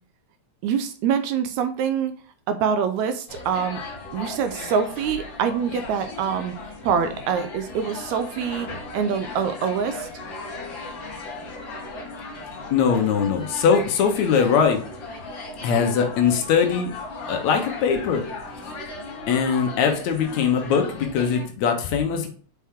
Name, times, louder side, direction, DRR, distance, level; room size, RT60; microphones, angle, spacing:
voice 1, 0.6-2.1 2.5-3.8 4.1-6.6 6.8-10.1, right 7 dB, 80° right, 9 dB, 1.8 m, -25 dB
sound 1, 3.3-21.5, left 3 dB, 50° left, 1.6 m, -36 dB
voice 2, 12.7-14.8 15.6-16.9 17.3-18.2 19.3-22.3, left 6 dB, 75° left, 5 dB, 2.1 m, -21 dB
5.8 x 4.6 x 3.5 m, 0.43 s
omnidirectional pair, 3.5 m